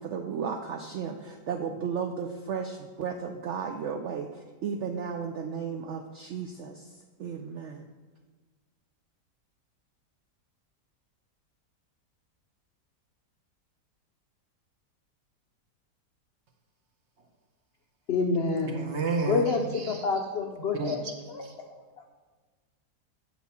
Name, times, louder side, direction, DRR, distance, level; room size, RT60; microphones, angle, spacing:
voice 1, 0.0-7.8, right 6 dB, 85° right, 0.6 m, -34 dB
voice 2, 18.1-18.9 19.2-22.1, left 4 dB, 70° left, 0.6 m, -29 dB
voice 3, 18.6-20.3 20.8-21.1, right 3 dB, 55° right, 0.9 m, -31 dB
8.7 x 6.1 x 4.1 m
omnidirectional pair, 1.8 m